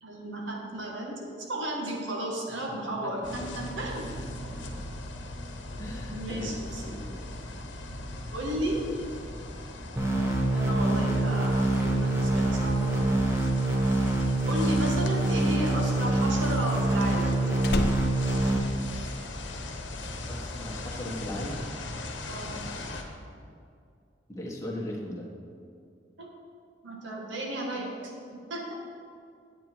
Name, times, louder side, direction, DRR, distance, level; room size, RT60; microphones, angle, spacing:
voice 1, 0.0-4.1 6.1-6.8 8.3-8.9 10.5-13.2 14.5-17.5 22.3-22.6 26.2-26.3 26.8-27.9 28.3-28.8, right 1 dB, 80° right, -1 dB, 1.8 m, -34 dB
sound 1, 3.2-23.0, left 2 dB, 70° left, 1.1 m, -39 dB
voice 2, 4.3-4.8 5.8-7.1 20.3-21.7 24.3-25.3, left 1 dB, 15° left, -3 dB, 1.3 m, -38 dB
sound 2, 10.0-18.6, right 2 dB, 15° right, 1.1 m, -25 dB
Slam, 15.3-19.4 19.7-20.1, left 2 dB, 55° left, 0.5 m, -34 dB
9.5 x 8.2 x 4.6 m, 2.3 s
head